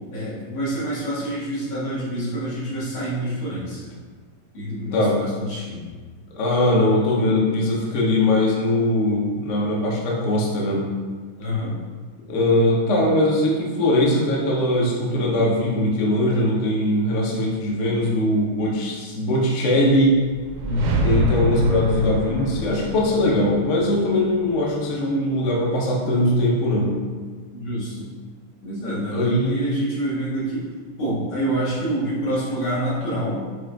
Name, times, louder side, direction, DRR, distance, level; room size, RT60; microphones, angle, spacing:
voice 1, 0.1-3.9 4.5-5.9 11.4-11.7 20.6-21.0 27.5-28.1 28.6-30.7 31.0-33.4, equal, 80° left, -8 dB, 2.3 m, -27 dB
voice 2, 6.3-10.9 12.3-20.2 21.0-27.0 29.1-29.9, left 1 dB, 60° left, -3 dB, 0.7 m, -21 dB
sound 1, 20.2-25.2, equal, 70° right, 1.1 m, -25 dB
6.0 x 2.4 x 3.4 m, 1.5 s
omnidirectional pair, 2.3 m